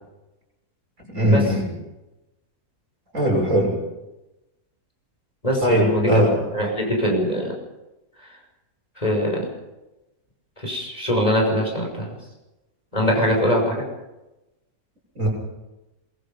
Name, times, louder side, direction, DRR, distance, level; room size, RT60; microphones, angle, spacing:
voice 1, 1.0-1.7 3.1-3.8 5.6-6.4 15.2-15.3, equal, 55° right, -1 dB, 7.1 m, -19 dB
voice 2, 5.4-6.1 6.5-7.5 9.0-9.5 10.6-12.1 12.9-13.8, equal, 25° left, -1 dB, 6.4 m, -22 dB
23.5 x 22.0 x 5.4 m, 1.0 s
omnidirectional pair, 1.6 m